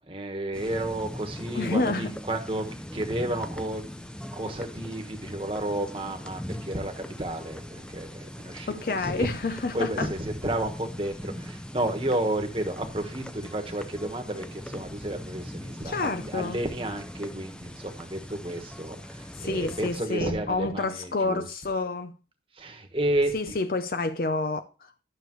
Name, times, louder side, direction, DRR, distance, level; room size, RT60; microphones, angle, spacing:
voice 1, 0.1-3.8 4.3-9.3 9.7-21.4 22.6-23.5, right 1 dB, 30° right, 1.3 m, -31 dB
sound 1, 0.5-20.0, equal, 5° left, 0.5 m, -40 dB
voice 2, 1.5-2.1 8.7-10.1 15.8-16.6 19.3-22.1 23.3-24.9, left 3 dB, 55° left, 0.6 m, -29 dB
12.0 x 6.6 x 3.1 m
head